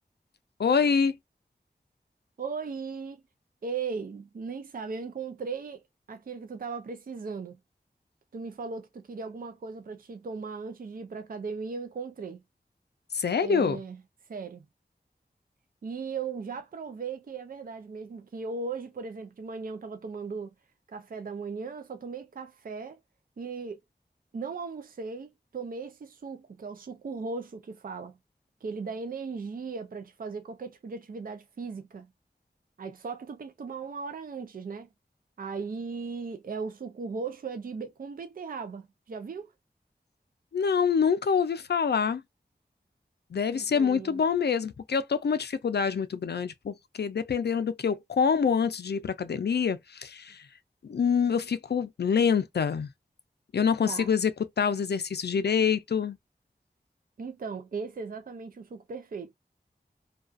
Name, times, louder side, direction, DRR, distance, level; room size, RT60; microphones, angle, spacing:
voice 1, 0.6-1.2 13.1-13.8 40.5-42.2 43.3-50.4 50.8-52.9 53.5-54.3 54.6-56.2, left 6 dB, 75° left, 0.4 m, -26 dB
voice 2, 2.4-3.2 3.6-5.8 6.1-7.6 8.3-12.4 13.4-14.0 14.3-14.7 15.8-20.5 20.9-23.0 23.4-23.8 24.3-28.2 28.6-32.1 32.8-34.9 35.4-39.5 43.5-44.2 53.8-54.1 57.2-59.3, right 4 dB, 55° right, 0.4 m, -37 dB
2.3 x 2.3 x 2.4 m
wide cardioid pair, 45°, 17 cm